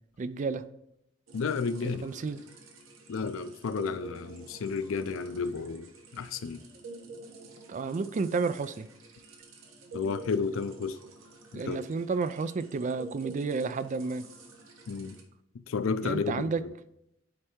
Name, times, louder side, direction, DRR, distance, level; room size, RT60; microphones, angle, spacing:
voice 1, 0.2-0.7 2.0-2.4 7.7-8.9 11.5-14.3 16.0-16.6, right 4 dB, 40° right, 0.3 m, -31 dB
voice 2, 1.3-2.1 3.1-5.9 6.1-6.6 9.9-11.0 11.5-11.8 14.9-15.2 15.5-16.7, left 5 dB, 90° left, 0.5 m, -32 dB
sound 1, 1.3-15.2, right 3 dB, 90° right, 1.3 m, -49 dB
9.6 x 3.3 x 4.5 m
head